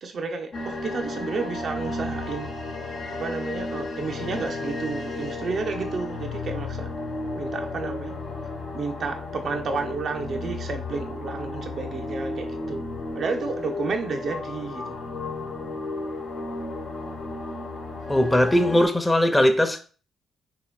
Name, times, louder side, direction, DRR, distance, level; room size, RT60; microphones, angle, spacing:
voice 1, 0.0-2.5 3.1-6.9 7.4-8.2 8.7-12.8 13.1-15.0, right 4 dB, 55° right, 0.5 m, -31 dB
sound 1, 0.5-18.9, left 2 dB, 70° left, 1.1 m, -33 dB
voice 2, 18.1-19.8, left 1 dB, 15° left, 0.8 m, -19 dB
3.2 x 3.2 x 4.7 m
supercardioid pair, 50°, 0 cm